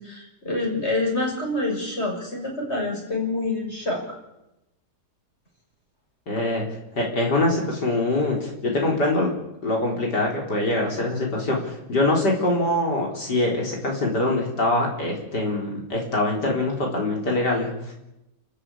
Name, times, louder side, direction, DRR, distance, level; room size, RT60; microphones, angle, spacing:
voice 1, 0.0-4.2, left 2 dB, 35° left, -1 dB, 6.8 m, -27 dB
voice 2, 6.3-6.6 6.9-9.3 9.6-17.9, left 2 dB, 75° left, -1 dB, 4.8 m, -24 dB
29.0 x 14.0 x 8.6 m, 0.92 s
omnidirectional pair, 1.8 m